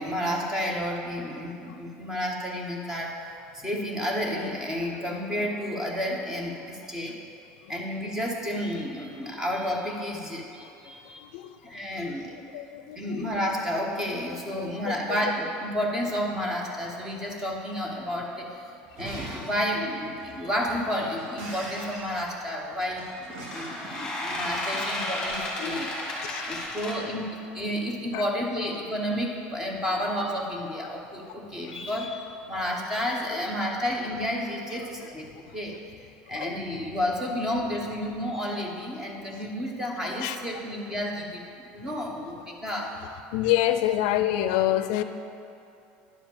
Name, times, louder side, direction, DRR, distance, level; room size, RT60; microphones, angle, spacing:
voice 1, 0.0-3.2 3.5-7.2 7.7-11.2 11.6-12.3 13.0-18.7 19.0-23.0 23.4-25.9 26.5-35.3 35.5-35.8 36.3-42.9, equal, 10° right, 0 dB, 1.0 m, -31 dB
voice 2, 10.8-11.6 11.9-12.0 12.3-13.2 14.3-15.2 23.8-23.9 24.7-24.9 25.2-25.3 25.6-25.9 26.2-26.7 28.1-28.2 31.7-31.9 33.3-33.4 34.7-35.1 35.5-35.6 36.3-36.8 40.2-40.4 43.0-45.0, left 13 dB, 75° left, 10 dB, 0.4 m, -29 dB
Shatter, 18.8-26.9, right 1 dB, 75° right, 2.1 m, -43 dB
sound 1, 21.7-22.0 23.3-26.9, left 1 dB, 10° left, 1.8 m, -33 dB
10.5 x 5.0 x 7.2 m, 2.6 s
cardioid pair, 170°, 4 cm